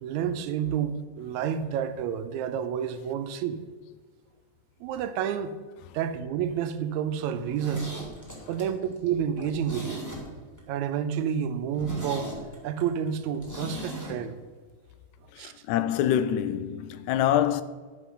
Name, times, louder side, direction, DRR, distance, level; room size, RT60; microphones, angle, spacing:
voice 1, 0.0-3.6 4.8-5.5 5.9-7.9 8.5-10.0 10.7-12.3 12.6-14.4 15.4-15.5, right 8 dB, 80° right, 1.9 m, -29 dB
Zipper (clothing), 7.3-10.6 10.9-11.0 11.4-11.5 11.7-14.2 14.4-14.5, equal, 10° left, 1.5 m, -39 dB
voice 2, 15.3-17.6, left 10 dB, 85° left, 1.9 m, -26 dB
11.5 x 5.7 x 5.4 m
omnidirectional pair, 3.3 m